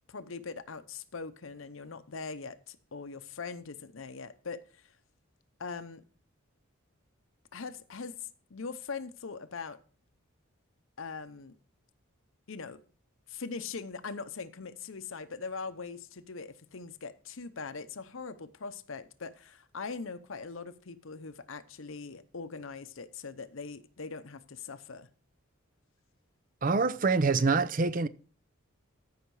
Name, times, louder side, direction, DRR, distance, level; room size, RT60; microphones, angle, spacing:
voice 1, 0.1-5.0 5.6-6.0 7.5-9.8 11.0-11.6 12.5-12.8 13.3-25.1, left 4 dB, 70° left, 0.8 m, -41 dB
voice 2, 26.6-28.1, right 4 dB, 40° right, 0.5 m, -25 dB
14.5 x 5.8 x 4.7 m
head